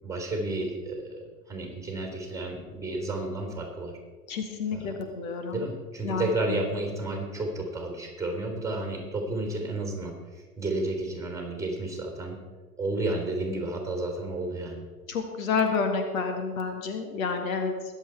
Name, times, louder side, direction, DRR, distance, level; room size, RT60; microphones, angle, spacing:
voice 1, 0.0-1.2 1.5-4.0 4.7-5.0 5.5-12.4 12.8-14.9, right 2 dB, 5° right, 2 dB, 3.7 m, -32 dB
voice 2, 4.3-5.6 6.0-6.2 15.1-17.7, left 5 dB, 60° left, 5 dB, 1.9 m, -29 dB
21.5 x 7.9 x 4.6 m, 1.3 s
figure-of-eight pair, 95°, 45 cm